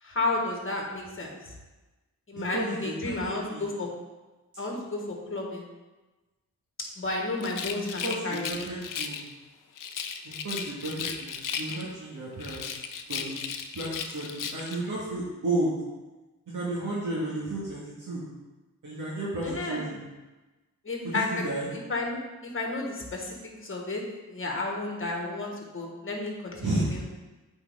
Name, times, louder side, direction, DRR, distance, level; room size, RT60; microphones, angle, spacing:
voice 1, 0.0-1.4 2.3-3.9 4.6-5.6 7.0-8.5 19.4-19.8 20.8-21.5 21.7-22.2 22.5-23.3 23.6-24.0 24.3-26.7, left 2 dB, 35° left, 0 dB, 1.5 m, -32 dB
voice 2, 2.3-3.7 7.8-9.2 10.2-12.7 13.1-13.4 13.7-15.7 16.5-18.2 18.8-20.0 21.0-21.7 26.6-27.0, right 2 dB, 55° right, -7 dB, 1.7 m, -32 dB
Rattle, 7.4-9.3 9.8-12.0 12.4-14.8, left 6 dB, 65° left, 0.6 m, -36 dB
8.2 x 4.5 x 3.6 m, 1.2 s
wide cardioid pair, 105°, 36 cm